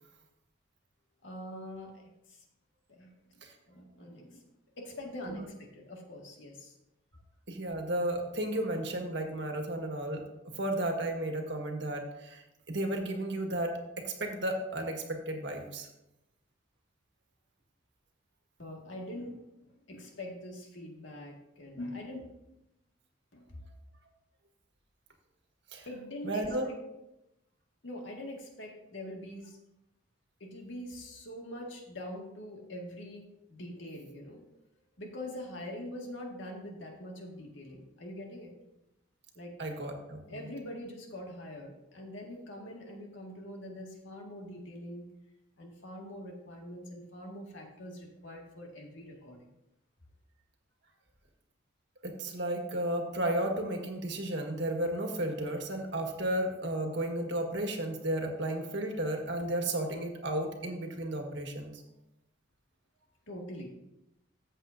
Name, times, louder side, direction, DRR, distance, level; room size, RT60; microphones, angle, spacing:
voice 1, 1.2-2.4 2.9-3.4 3.7-4.5 4.8-6.8 18.6-22.3 23.3-23.6 25.9-26.8 27.8-29.6 30.4-34.4 35.0-38.5 39.3-39.5 40.3-45.1 45.6-49.4 63.3-63.7, left 1 dB, 75° left, 0 dB, 2.0 m, -44 dB
voice 2, 7.5-10.2 10.5-13.7 14.0-15.9 25.7-25.9 26.2-26.7 39.6-40.4 52.0-61.8, right 1 dB, 60° right, 3 dB, 1.5 m, -33 dB
14.0 x 7.6 x 2.7 m, 0.89 s
head